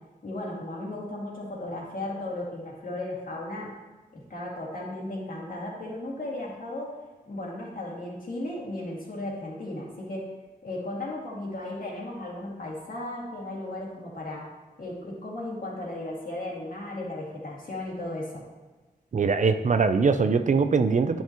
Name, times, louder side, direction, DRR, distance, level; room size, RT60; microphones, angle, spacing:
voice 1, 0.2-3.8 4.1-7.0 7.3-10.3 10.6-14.5 14.8-18.4, left 1 dB, 60° left, -4 dB, 2.2 m, -35 dB
voice 2, 19.1-21.2, right 5 dB, 50° right, 9 dB, 0.4 m, -22 dB
10.0 x 5.7 x 2.9 m, 1.2 s
wide cardioid pair, 105°, 17 cm